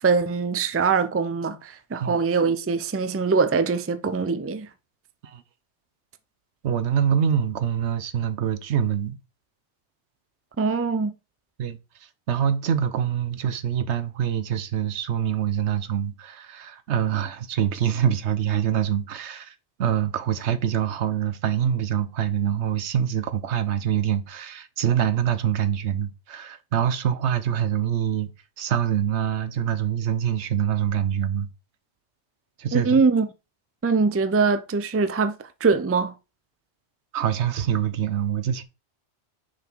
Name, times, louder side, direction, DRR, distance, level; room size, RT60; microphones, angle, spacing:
voice 1, 0.0-4.7 10.6-11.1 32.7-33.3 33.8-35.4 35.6-36.1, right 4 dB, 25° right, 0.3 m, -22 dB
voice 2, 6.6-9.2 11.6-28.3 28.6-31.5 32.6-33.0 37.1-38.6, right 9 dB, 80° right, 1.0 m, -25 dB
6.4 x 4.1 x 4.5 m
omnidirectional pair, 1.1 m